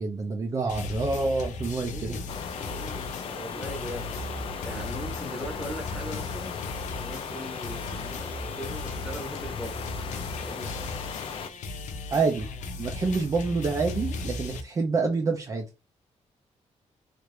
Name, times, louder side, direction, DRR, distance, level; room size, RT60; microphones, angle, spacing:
voice 1, 0.0-2.2 12.1-12.5 12.8-15.7, right 4 dB, 30° right, 0.5 m, -27 dB
sound 1, 0.7-14.6, left 3 dB, 90° left, 0.6 m, -37 dB
voice 2, 1.8-2.2 2.6-9.8 10.4-10.8, right 1 dB, 5° right, 0.9 m, -40 dB
sound 2, 2.3-11.5, left 6 dB, 50° left, 0.4 m, -37 dB
3.2 x 2.5 x 3.1 m
wide cardioid pair, 160°, 12 cm